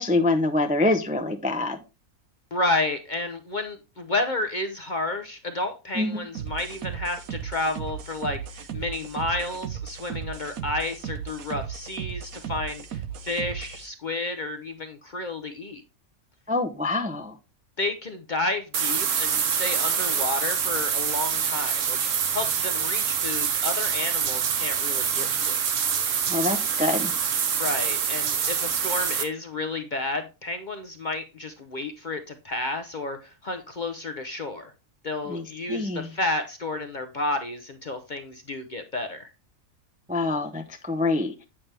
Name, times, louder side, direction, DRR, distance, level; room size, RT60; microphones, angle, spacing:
voice 1, 0.0-1.8 5.9-6.2 16.5-17.4 26.3-27.1 35.3-36.1 40.1-41.3, left 2 dB, 10° right, 4 dB, 0.4 m, -25 dB
voice 2, 2.5-15.8 17.8-25.7 27.6-34.7 35.0-39.3, left 2 dB, 45° left, 7 dB, 0.7 m, -31 dB
sound 1, 6.3-13.9, right 8 dB, 85° right, 1.3 m, -36 dB
sound 2, 18.7-29.2, right 7 dB, 65° right, 1.2 m, -25 dB
8.6 x 5.8 x 3.3 m, 0.30 s
omnidirectional pair, 1.5 m